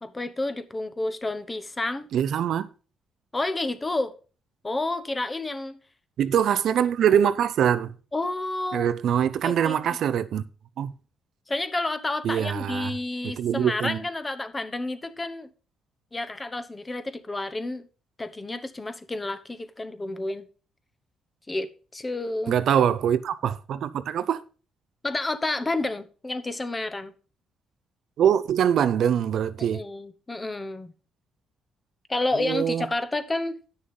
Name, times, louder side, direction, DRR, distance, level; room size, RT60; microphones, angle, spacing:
voice 1, 0.0-2.1 3.3-4.1 4.6-5.8 8.1-8.9 9.4-9.8 11.5-15.5 16.1-17.9 18.2-20.5 21.5-22.5 25.0-27.1 29.6-30.9 32.1-33.6, left 2 dB, 20° left, 1.0 m, -30 dB
voice 2, 2.1-2.7 6.2-7.9 8.7-10.4 10.8-10.9 12.2-12.9 13.2-14.0 22.5-24.4 28.2-29.8 32.4-32.9, right 9 dB, 70° right, 0.5 m, -23 dB
9.5 x 6.4 x 5.4 m
cardioid pair, 90°, 0 cm